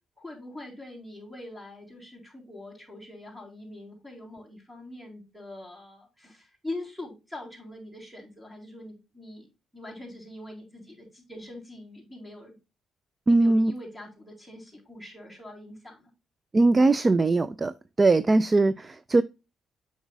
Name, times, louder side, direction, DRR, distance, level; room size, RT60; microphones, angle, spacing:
voice 1, 0.2-12.6 13.3-16.1, left 1 dB, 5° right, 3.8 m, -43 dB
voice 2, 13.3-13.7 16.5-17.7 18.0-19.2, right 2 dB, 25° right, 0.4 m, -20 dB
8.1 x 6.1 x 2.3 m
cardioid pair, 90°, 0 cm